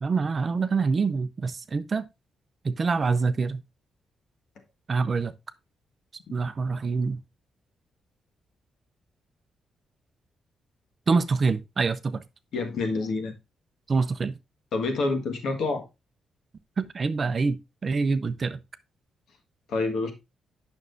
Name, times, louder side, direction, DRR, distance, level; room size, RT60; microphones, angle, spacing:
voice 1, 0.0-2.0 2.6-3.6 4.9-5.3 6.3-7.2 11.1-12.2 13.9-14.4 16.8-18.6, right 4 dB, 30° right, 0.5 m, -25 dB
voice 2, 12.5-13.3 14.7-15.8 19.7-20.1, left 3 dB, 65° left, 1.6 m, -27 dB
8.9 x 6.2 x 2.6 m
wide cardioid pair, 165°, 0 cm